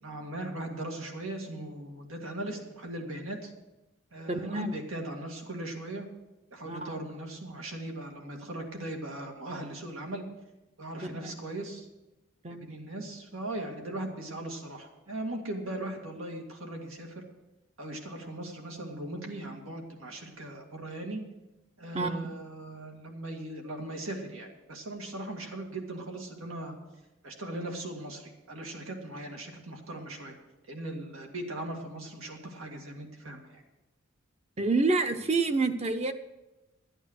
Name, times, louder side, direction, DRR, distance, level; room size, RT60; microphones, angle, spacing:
voice 1, 0.0-3.5 4.1-6.1 6.5-10.3 10.8-11.9 12.6-17.2 17.8-21.3 21.8-26.8 27.2-30.3 30.7-33.6, right 1 dB, 90° right, 2 dB, 2.1 m, -39 dB
voice 2, 4.3-4.7 6.6-7.0 11.0-11.4 12.4-12.7 21.9-22.2 34.6-36.1, right 3 dB, 30° right, 9 dB, 0.7 m, -28 dB
12.5 x 9.0 x 6.4 m, 1.0 s
head